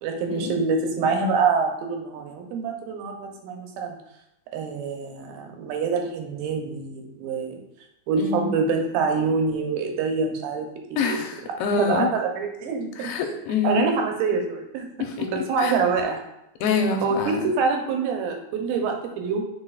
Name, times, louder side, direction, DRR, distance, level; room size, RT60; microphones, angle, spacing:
voice 1, 0.0-4.0 4.5-7.6 8.1-11.3 11.8-13.1 13.6-14.9 15.2-16.2 17.0-19.4, right 4 dB, 80° right, 2 dB, 2.6 m, -26 dB
voice 2, 8.2-8.5 11.0-12.1 13.0-13.9 15.0-15.3 15.6-15.7 16.6-17.4, left 5 dB, 90° left, 4 dB, 2.6 m, -25 dB
8.8 x 4.6 x 2.4 m, 0.84 s
omnidirectional pair, 4.2 m